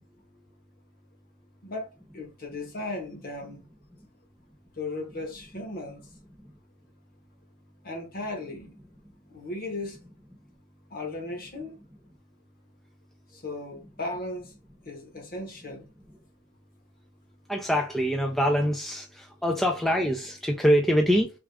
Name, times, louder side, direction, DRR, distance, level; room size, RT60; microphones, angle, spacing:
voice 1, 1.6-3.6 4.8-6.1 7.8-8.7 9.3-10.0 10.9-11.8 13.3-14.5 14.8-15.9, left 2 dB, 45° left, 1.1 m, -36 dB
voice 2, 17.5-21.3, equal, ahead, 0.4 m, -24 dB
3.5 x 2.4 x 3.3 m
head